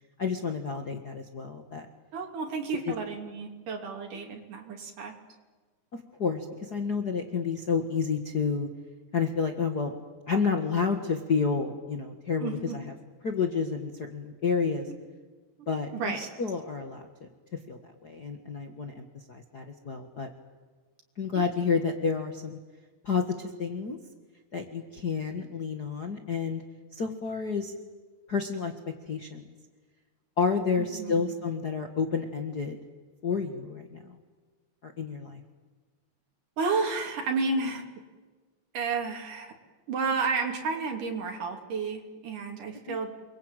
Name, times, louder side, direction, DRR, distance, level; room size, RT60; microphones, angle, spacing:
voice 1, 0.2-1.9 2.9-3.0 4.3-4.4 6.2-8.7 9.1-9.9 10.3-12.9 13.2-14.9 15.7-17.3 17.7-20.3 21.2-22.6 23.0-24.0 24.5-26.6 26.9-27.7 28.3-28.7 29.1-29.4 30.4-32.8 33.2-34.2 34.8-35.4 42.9-43.0, left 5 dB, 40° left, 5 dB, 1.8 m, -30 dB
voice 2, 2.1-5.1 12.4-12.8 14.9-15.0 15.6-15.7 15.9-16.2 21.3-21.4 30.8-31.3 36.6-37.8 38.7-39.5 39.9-43.1, right 4 dB, 90° right, 2 dB, 4.6 m, -31 dB
29.0 x 22.5 x 9.1 m, 1.4 s
omnidirectional pair, 3.6 m